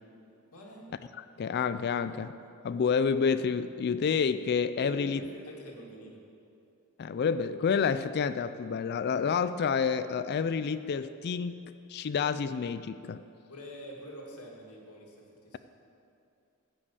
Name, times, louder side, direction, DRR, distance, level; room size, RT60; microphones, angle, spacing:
voice 1, 0.5-0.9 4.8-6.2 13.5-15.6, equal, 80° left, -2 dB, 2.2 m, -45 dB
voice 2, 1.2-2.3 2.6-5.2 7.0-11.6 11.9-13.2, left 6 dB, 45° left, 12 dB, 0.3 m, -29 dB
13.0 x 5.4 x 8.4 m, 2.6 s
head